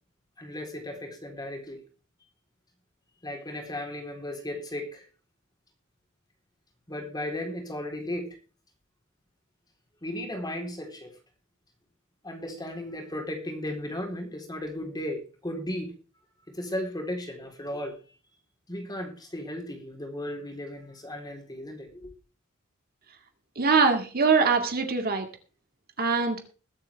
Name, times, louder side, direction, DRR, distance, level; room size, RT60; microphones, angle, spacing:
voice 1, 0.4-1.8 3.2-5.1 6.9-8.4 10.0-11.1 12.2-15.9 16.5-18.0 18.7-22.1, left 1 dB, 20° left, 2 dB, 3.9 m, -35 dB
voice 2, 23.6-25.3 26.0-26.4, right 4 dB, 45° right, 5 dB, 2.1 m, -23 dB
21.5 x 8.5 x 3.5 m, 0.37 s
head